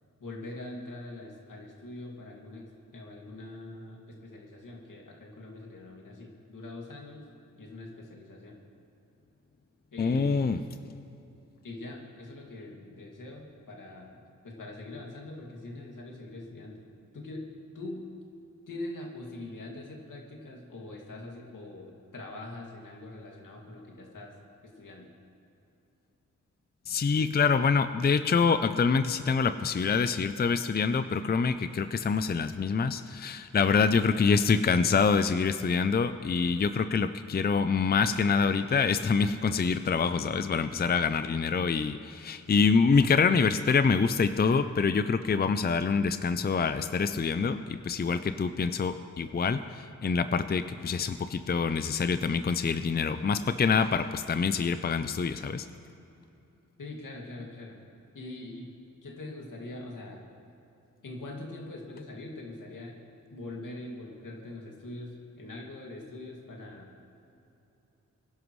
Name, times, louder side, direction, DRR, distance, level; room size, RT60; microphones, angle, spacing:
voice 1, 0.2-7.3 7.6-8.6 9.9-10.5 10.8-10.9 11.6-14.2 14.4-16.8 17.1-17.4 17.7-18.0 18.7-24.3 24.6-25.1 56.8-57.8 58.1-58.7 59.0-60.2 61.0-63.0 63.3-66.9, left 2 dB, 80° left, -1 dB, 2.4 m, -43 dB
voice 2, 10.0-10.6 26.9-55.7, left 5 dB, 30° left, 10 dB, 0.5 m, -26 dB
23.5 x 11.5 x 3.2 m, 2.8 s
wide cardioid pair, 70°, 31 cm